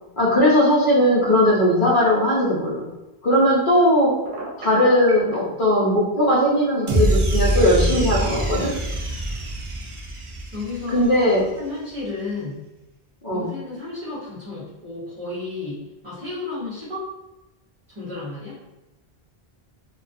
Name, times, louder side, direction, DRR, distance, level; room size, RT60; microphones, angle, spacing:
voice 1, 0.2-2.8 3.2-4.2 4.6-8.7 10.9-11.5 13.2-13.5, equal, 60° left, -5 dB, 0.7 m, -18 dB
Telephone, 4.2-5.4, right 2 dB, 75° right, 0.9 m, -35 dB
sound 1, 6.9-11.2, right 1 dB, 55° right, 0.3 m, -24 dB
voice 2, 10.5-11.1 11.6-12.6 13.3-17.1 17.9-18.6, left 3 dB, 35° right, -9 dB, 0.8 m, -32 dB
2.3 x 2.2 x 2.5 m, 1.0 s
omnidirectional pair, 1.0 m